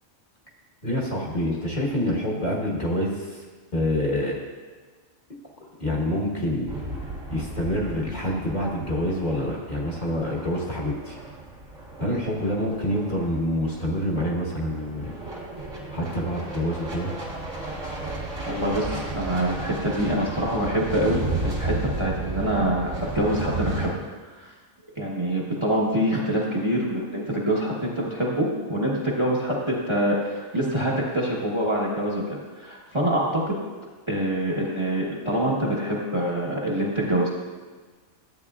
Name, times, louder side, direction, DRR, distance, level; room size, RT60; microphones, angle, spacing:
voice 1, 0.8-3.4 3.7-4.4 5.6-6.7 7.3-11.2 12.0-15.1 15.9-17.1, equal, 35° left, -3 dB, 1.5 m, -27 dB
sound 1, 6.7-23.9, right 2 dB, 60° right, 2.3 m, -34 dB
voice 2, 18.5-24.5 25.0-33.6 34.1-37.3, right 1 dB, 25° right, -4 dB, 1.2 m, -25 dB
12.5 x 8.4 x 2.4 m, 1.4 s
omnidirectional pair, 1.4 m